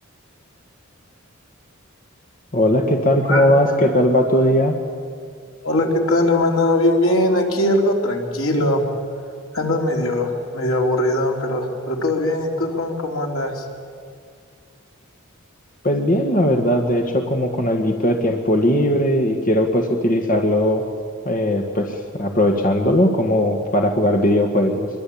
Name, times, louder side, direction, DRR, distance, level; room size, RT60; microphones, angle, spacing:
voice 1, 2.5-4.8 15.8-20.8 21.3-24.9, left 1 dB, 40° left, 3 dB, 1.8 m, -18 dB
voice 2, 5.6-8.8 9.5-13.7, left 1 dB, 80° left, 1 dB, 3.7 m, -20 dB
24.0 x 22.5 x 8.7 m, 2.2 s
head